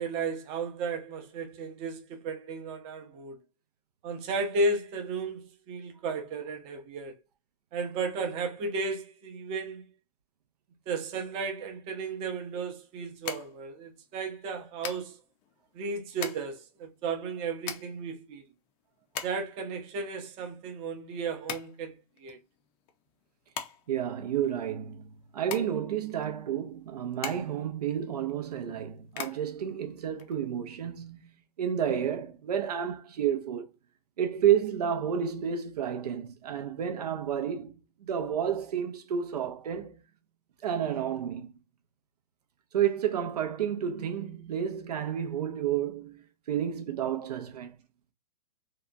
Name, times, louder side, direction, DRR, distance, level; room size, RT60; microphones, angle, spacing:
voice 1, 0.0-3.4 4.0-7.2 7.7-9.9 10.9-15.2 15.7-18.4 19.2-21.9 22.2-22.4, right 3 dB, 30° right, 0.6 m, -34 dB
sound 1, 12.0-30.8, left 9 dB, 25° left, 0.4 m, -44 dB
voice 2, 23.9-33.7 34.2-40.0 40.6-41.5 42.7-47.7, right 9 dB, 75° right, 0.5 m, -31 dB
2.8 x 2.2 x 2.4 m
hypercardioid pair, 135°, 20 cm